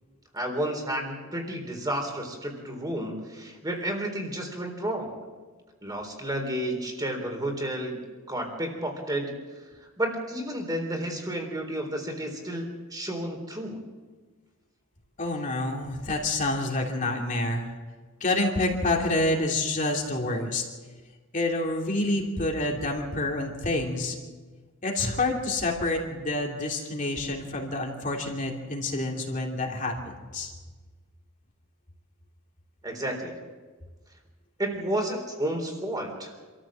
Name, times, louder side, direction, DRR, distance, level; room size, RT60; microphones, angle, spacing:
voice 1, 0.3-5.2 5.8-8.0 8.3-9.4 10.0-13.8 32.8-33.4 34.6-36.3, right 1 dB, 20° right, 3 dB, 3.9 m, -31 dB
voice 2, 15.2-17.7 18.2-20.6 21.3-24.2 24.8-30.5, left 2 dB, 40° left, 0 dB, 2.9 m, -28 dB
27.0 x 14.0 x 7.6 m, 1.4 s
head